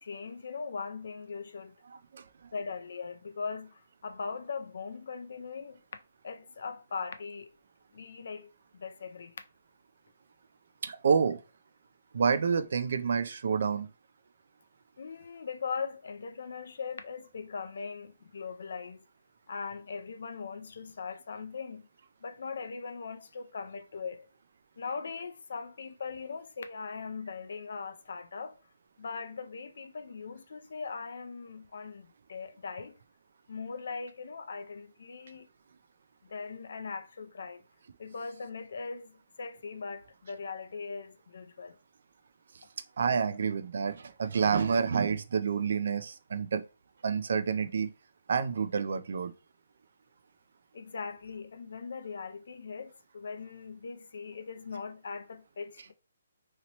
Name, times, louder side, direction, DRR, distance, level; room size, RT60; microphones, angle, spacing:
voice 1, 0.0-1.7 2.5-5.8 6.2-7.5 7.9-8.5 8.8-9.3 15.0-19.0 19.5-21.9 22.2-24.3 24.8-28.6 29.0-33.0 33.5-35.5 36.2-37.6 38.0-41.8 50.7-55.9, left 5 dB, 70° left, 0.4 m, -40 dB
voice 2, 10.8-11.4 12.1-13.9 43.0-46.6 47.0-47.9 48.3-49.3, right 6 dB, 65° right, 0.3 m, -28 dB
2.9 x 2.8 x 2.9 m
hypercardioid pair, 155°, 0 cm